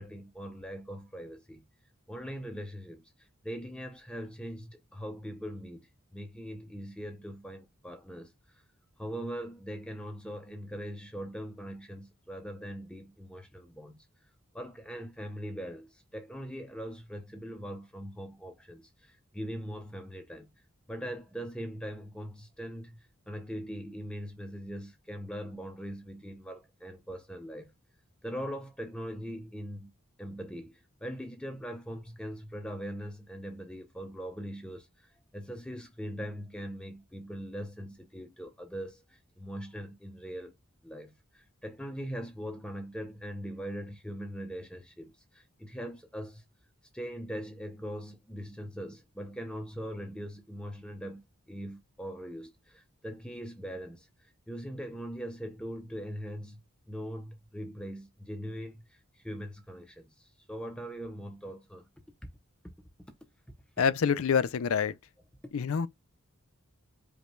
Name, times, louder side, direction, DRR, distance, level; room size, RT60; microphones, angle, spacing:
voice 1, 0.0-1.6 2.1-8.6 9.0-14.1 14.5-20.5 20.9-27.7 28.2-29.9 30.2-40.5 40.8-46.4 46.9-61.8, equal, 5° left, 0.5 m, -41 dB
voice 2, 63.8-64.9 65.5-65.9, left 6 dB, 70° left, 0.4 m, -26 dB
5.2 x 2.3 x 3.1 m
head